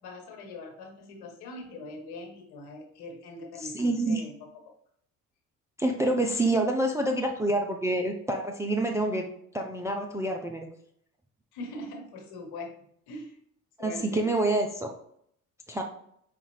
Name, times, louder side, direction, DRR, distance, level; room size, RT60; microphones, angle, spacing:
voice 1, 0.0-4.3 11.5-12.8 13.1-13.4 13.8-14.3, left 2 dB, 60° left, 1 dB, 1.3 m, -42 dB
voice 2, 3.6-4.2 5.8-9.3 9.5-10.7 13.8-14.9 15.7-15.8, right 1 dB, 5° right, 2 dB, 0.4 m, -27 dB
5.2 x 2.4 x 3.2 m, 0.68 s
hypercardioid pair, 55°, 43 cm